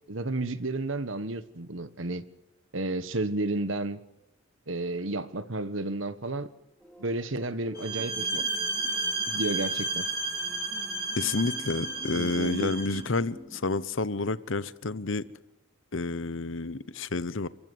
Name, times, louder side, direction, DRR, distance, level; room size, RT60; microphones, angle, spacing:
voice 1, 0.1-2.2 2.7-4.0 4.7-6.5 7.0-8.4 9.3-10.1 12.1-12.8, right 2 dB, 70° right, 1.5 m, -32 dB
sound 1, 6.8-13.9, right 1 dB, 5° left, 4.2 m, -47 dB
sound 2, 7.7-13.0, right 2 dB, 20° right, 6.1 m, -32 dB
voice 2, 11.2-15.3 15.9-17.5, left 3 dB, 70° left, 0.9 m, -30 dB
28.5 x 15.0 x 9.5 m
head